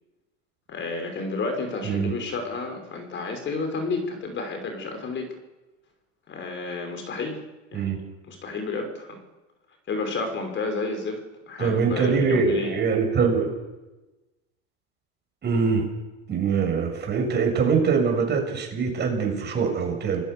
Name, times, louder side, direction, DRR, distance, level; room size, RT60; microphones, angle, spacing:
voice 1, 0.7-5.4 6.3-7.4 7.7-7.9 8.2-9.2 9.9-12.7, left 3 dB, 30° left, 5 dB, 5.7 m, -31 dB
voice 2, 11.6-13.5 15.4-15.9 16.3-20.2, right 5 dB, 25° right, 3 dB, 7.8 m, -23 dB
29.0 x 20.0 x 7.0 m, 1.1 s
hypercardioid pair, 100°, 37 cm